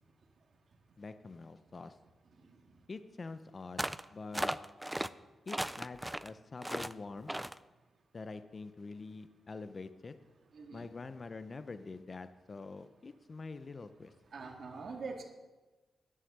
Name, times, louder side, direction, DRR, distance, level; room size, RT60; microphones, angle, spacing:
voice 1, 1.0-2.0 2.9-4.5 5.5-7.3 8.1-10.2 10.7-14.1, left 3 dB, 35° left, 11 dB, 0.6 m, -45 dB
sound 1, 3.8-4.0 4.3-5.1 5.5-6.3 6.6-6.9 7.3-7.6, right 1 dB, 5° right, 0.3 m, -36 dB
voice 2, 10.5-10.9 14.3-15.2, right 4 dB, 55° right, 3 dB, 1.8 m, -43 dB
9.8 x 9.3 x 6.6 m, 1.2 s
cardioid pair, 110°, 0 cm